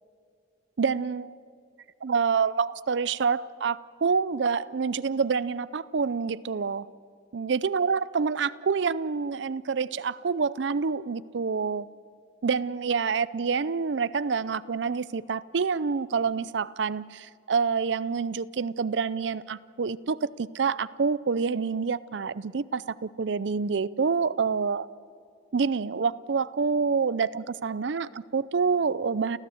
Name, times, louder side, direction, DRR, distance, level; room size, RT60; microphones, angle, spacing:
voice 1, 0.8-1.4 2.0-6.9 7.3-11.9 12.4-24.9 25.5-29.4, right 5 dB, 70° right, 17 dB, 0.5 m, -27 dB
29.5 x 15.0 x 7.9 m, 2.4 s
head